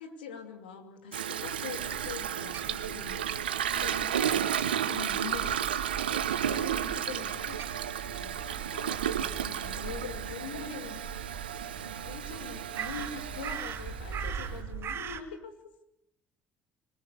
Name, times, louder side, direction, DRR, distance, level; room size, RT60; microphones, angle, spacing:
voice 1, 0.0-5.6 6.1-11.4 11.8-15.5, left 7 dB, 85° left, 6 dB, 2.7 m, -44 dB
Toilet flush, 1.1-14.5, right 9 dB, 90° right, 0.9 m, -33 dB
Crow, 1.8-15.2, right 7 dB, 55° right, 2.5 m, -42 dB
25.5 x 20.0 x 8.1 m, 0.78 s
hypercardioid pair, 60°, 5 cm